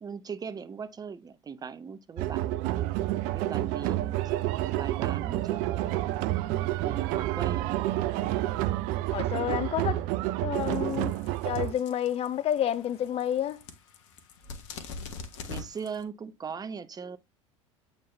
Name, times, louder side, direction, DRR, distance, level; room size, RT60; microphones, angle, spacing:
voice 1, 0.0-2.5 3.3-6.1 6.8-7.8 15.4-17.2, right 6 dB, 25° right, 0.9 m, -40 dB
sound 1, 2.2-11.7, right 15 dB, 55° right, 0.6 m, -29 dB
voice 2, 9.1-10.1 10.4-11.1 11.4-13.6, left 10 dB, 40° left, 0.7 m, -29 dB
sound 2, 10.6-16.0, left 4 dB, 65° left, 1.4 m, -44 dB
8.4 x 4.1 x 3.2 m
hypercardioid pair, 75°, 16 cm